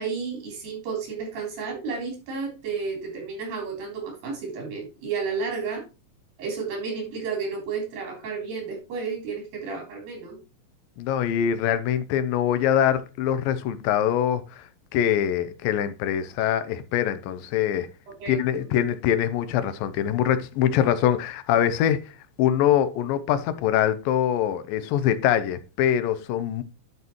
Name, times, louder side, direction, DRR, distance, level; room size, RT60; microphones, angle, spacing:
voice 1, 0.0-5.8 6.4-10.4 18.2-18.6, right 5 dB, 85° right, 5.4 m, -32 dB
voice 2, 11.0-17.9 18.3-22.0 22.4-26.6, left 10 dB, 85° left, 2.4 m, -23 dB
11.5 x 5.5 x 3.0 m
omnidirectional pair, 4.0 m